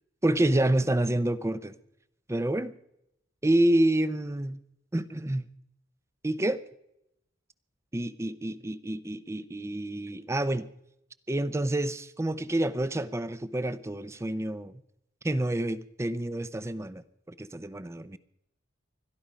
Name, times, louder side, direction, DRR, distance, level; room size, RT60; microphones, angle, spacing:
voice 1, 0.2-1.7 2.3-2.7 3.4-4.6 4.9-5.5 6.2-6.6 7.9-10.7 11.3-14.8 15.2-17.0 17.4-18.2, right 1 dB, 15° right, 15 dB, 0.5 m, -28 dB
21.0 x 12.5 x 5.1 m, 0.81 s
head